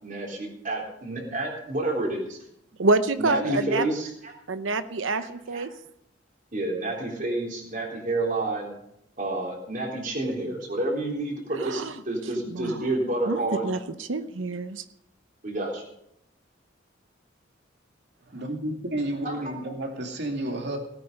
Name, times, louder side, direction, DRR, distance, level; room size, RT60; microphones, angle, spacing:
voice 1, 0.0-2.4 3.2-4.3 5.1-5.7 6.5-8.7 9.2-13.7 15.4-15.8 19.2-19.5, right 2 dB, 45° right, 0 dB, 3.6 m, -29 dB
voice 2, 2.8-3.9 4.5-5.7 11.6-11.9 12.5-12.8 13.3-14.8, right 3 dB, 85° right, 11 dB, 0.8 m, -27 dB
voice 3, 18.3-20.8, right 1 dB, 60° right, 2 dB, 2.6 m, -31 dB
17.5 x 9.3 x 5.4 m, 0.78 s
head